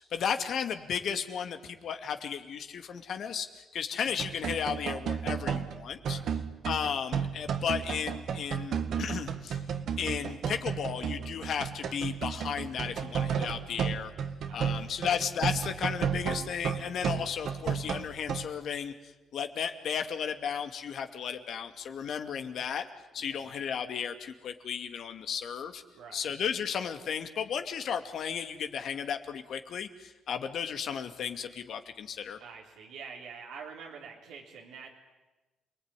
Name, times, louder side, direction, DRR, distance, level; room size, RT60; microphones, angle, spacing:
voice 1, 0.1-6.2 6.6-9.6 10.0-14.1 14.5-18.9 19.3-22.9 23.1-25.8 26.1-32.4, left 7 dB, 65° left, 7 dB, 2.5 m, -34 dB
sound 1, 4.1-18.5, right 7 dB, 65° right, 2.0 m, -33 dB
voice 2, 5.9-6.4 14.4-15.1 23.2-23.5 25.9-26.3 32.4-34.9, right 5 dB, 90° right, -2 dB, 3.8 m, -47 dB
29.0 x 20.0 x 10.0 m, 1.1 s
cardioid pair, 90°, 0 cm